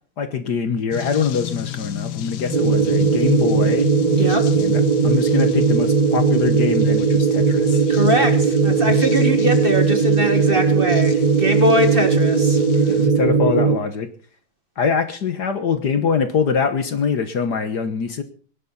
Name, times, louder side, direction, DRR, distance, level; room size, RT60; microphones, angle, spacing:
voice 1, 0.2-3.9 4.6-7.8 12.9-14.1 14.8-18.2, left 6 dB, 55° left, 9 dB, 1.7 m, -23 dB
sound 1, 0.9-13.1, left 13 dB, 75° left, 1.6 m, -32 dB
sound 2, 2.5-13.8, right 5 dB, 55° right, 0.5 m, -18 dB
voice 2, 7.9-13.0, equal, 25° right, 6 dB, 1.9 m, -22 dB
21.5 x 11.5 x 4.2 m, 0.43 s
omnidirectional pair, 2.2 m